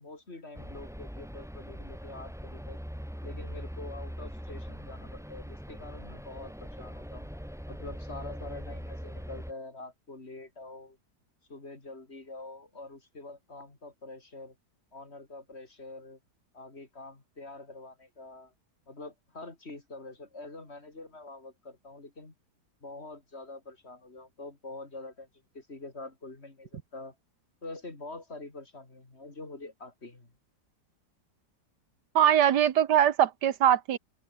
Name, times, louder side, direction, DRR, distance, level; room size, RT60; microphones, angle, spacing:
voice 1, 0.0-2.8 3.2-7.3 7.7-11.0 11.5-14.6 14.9-16.2 16.5-18.5 18.9-22.3 22.8-25.3 25.5-27.2 27.6-30.3, left 2 dB, 40° left, 3.8 m, -45 dB
sound 1, 0.5-9.5, equal, ahead, 5.6 m, -41 dB
voice 2, 32.1-34.0, right 10 dB, 80° right, 1.7 m, -22 dB
open air
omnidirectional pair, 1.8 m